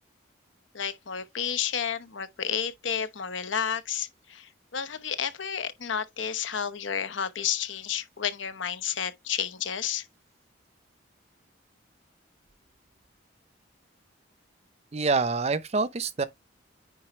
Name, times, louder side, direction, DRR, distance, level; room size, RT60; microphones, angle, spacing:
voice 1, 0.7-10.1, left 8 dB, 75° left, 0.8 m, -31 dB
voice 2, 14.9-16.3, right 4 dB, 35° right, 0.5 m, -26 dB
9.3 x 3.9 x 3.1 m
head